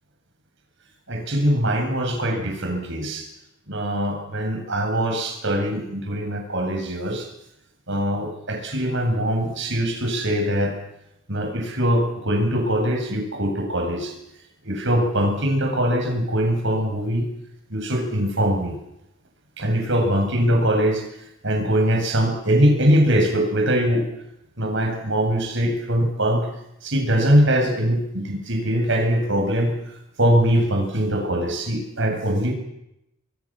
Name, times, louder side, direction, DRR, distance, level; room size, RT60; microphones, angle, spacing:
voice 1, 1.1-3.3 3.7-7.3 7.9-10.7 11.3-14.1 14.6-17.3 17.7-18.8 19.6-21.0 21.4-24.1 24.6-26.5 26.8-29.7 30.2-32.5, equal, 55° right, 2 dB, 7.9 m, -22 dB
26.0 x 23.0 x 7.7 m, 0.84 s
head